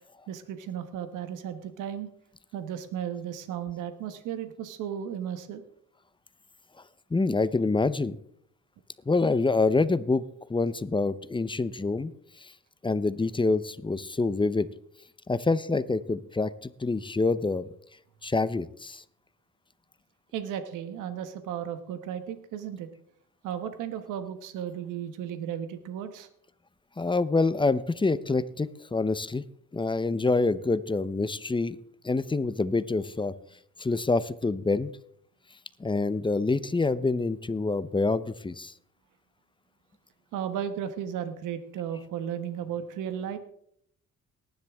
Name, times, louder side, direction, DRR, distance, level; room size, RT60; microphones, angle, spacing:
voice 1, 0.3-2.1 2.5-5.6 20.3-22.9 23.4-26.3 40.3-43.4, right 9 dB, 90° right, 9 dB, 1.2 m, -35 dB
voice 2, 7.1-8.2 9.1-10.2 10.5-12.1 12.8-14.7 15.3-17.6 18.2-19.0 27.0-29.4 29.7-31.8 32.0-33.3 33.8-34.9 35.8-38.7, left 3 dB, 15° left, 15 dB, 0.7 m, -26 dB
19.0 x 10.5 x 3.6 m, 0.68 s
cardioid pair, 90°, 30 cm